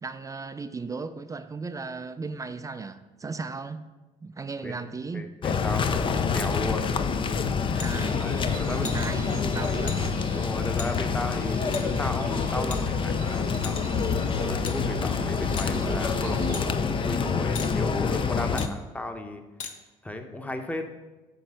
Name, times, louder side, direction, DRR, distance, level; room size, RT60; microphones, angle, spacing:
voice 1, 0.0-3.8 4.2-5.2 7.7-8.2 8.7-10.0 18.5-18.8, right 4 dB, 20° right, 10 dB, 0.4 m, -36 dB
voice 2, 5.1-6.9 8.1-8.9 9.5-9.9 10.3-13.9 14.4-19.4 20.0-20.8, left 1 dB, 10° left, 6 dB, 0.9 m, -35 dB
sound 1, 5.4-18.7, left 5 dB, 35° left, 0.5 m, -27 dB
sound 2, 7.8-7.9 8.8-9.1 9.9-10.0 10.8-10.9 11.7-11.8 12.7-13.1 13.6-14.0 14.6-14.8 15.6-15.7 16.5-16.6 17.5-17.7 18.6-18.7 19.6-19.7, left 6 dB, 55° left, 0.9 m, -37 dB
sound 3, 7.9-16.7, right 7 dB, 65° right, 0.7 m, -41 dB
9.1 x 3.2 x 6.2 m, 1.2 s
supercardioid pair, 80°, 15 cm